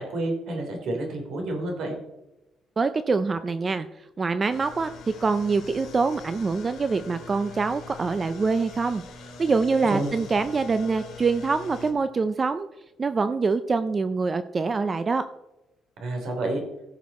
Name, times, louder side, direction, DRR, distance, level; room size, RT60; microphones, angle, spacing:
voice 1, 0.0-1.9 9.8-10.1 16.0-16.6, right 2 dB, 65° right, 2 dB, 3.3 m, -29 dB
voice 2, 2.8-3.9 4.2-4.9 5.2-12.7 13.0-15.2, right 4 dB, 25° right, 11 dB, 0.4 m, -25 dB
sound 1, 4.5-11.9, left 4 dB, 80° left, 2.4 m, -43 dB
16.0 x 6.1 x 4.2 m, 0.95 s
cardioid pair, 165°, 0 cm